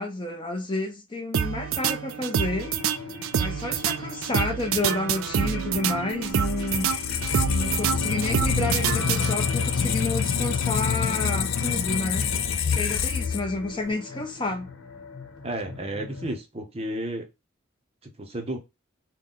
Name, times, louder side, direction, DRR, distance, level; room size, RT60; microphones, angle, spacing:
voice 1, 0.0-2.7 3.4-6.9 7.5-12.3 12.7-14.7, left 2 dB, 25° left, 0.7 m, -30 dB
sound 1, 1.3-9.7, right 8 dB, 80° right, 0.4 m, -27 dB
sound 2, 2.4-16.4, left 5 dB, 90° left, 0.9 m, -38 dB
Squeak, 6.2-13.9, left 7 dB, 70° left, 0.5 m, -27 dB
voice 2, 15.4-17.3 18.0-18.6, right 1 dB, 30° right, 0.6 m, -32 dB
3.9 x 2.2 x 3.7 m
head